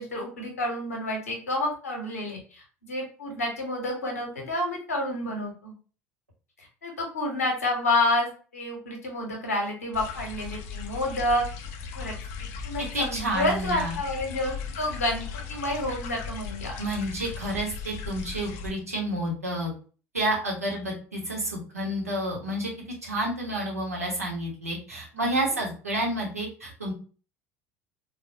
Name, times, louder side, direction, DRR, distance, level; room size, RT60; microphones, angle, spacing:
voice 1, 0.0-5.7 6.6-11.5 11.9-12.1 12.6-15.2 15.5-16.8 25.1-25.3, left 1 dB, 80° left, 1 dB, 0.9 m, -29 dB
sound 1, 9.9-18.7, left 6 dB, 55° left, 0.5 m, -37 dB
voice 2, 12.9-14.0 16.8-19.7 20.1-22.7 23.0-26.9, right 1 dB, 90° right, -3 dB, 0.9 m, -30 dB
3.4 x 2.3 x 2.6 m, 0.38 s
figure-of-eight pair, 65°, 8 cm